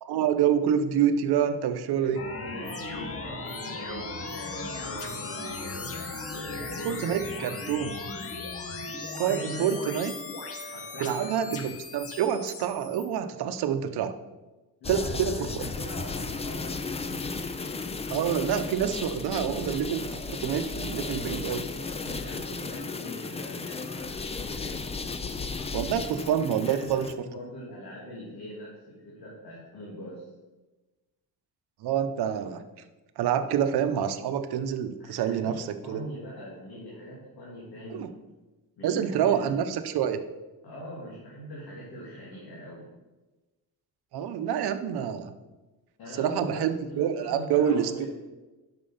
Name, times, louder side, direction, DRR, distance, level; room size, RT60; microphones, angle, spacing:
voice 1, 0.0-2.2 6.8-7.9 9.2-10.1 11.0-14.1 14.9-15.5 18.1-21.7 25.7-27.1 31.8-32.6 33.2-36.0 37.9-38.1 38.8-40.2 44.1-45.3 46.2-48.1, right 9 dB, 80° right, 9 dB, 0.8 m, -27 dB
sound 1, 2.1-13.1, left 3 dB, 35° left, 1.1 m, -37 dB
voice 2, 2.4-6.0 6.3-7.6 9.3-9.8 10.6-11.6 14.8-17.2 21.9-24.9 26.6-30.2 35.0-38.1 38.8-39.5 40.6-42.9 46.0-48.1, equal, 75° left, -6 dB, 2.9 m, -42 dB
sound 2, 14.8-27.1, left 4 dB, 15° left, 0.4 m, -34 dB
8.8 x 6.1 x 5.7 m, 1.1 s
cardioid pair, 150°, 38 cm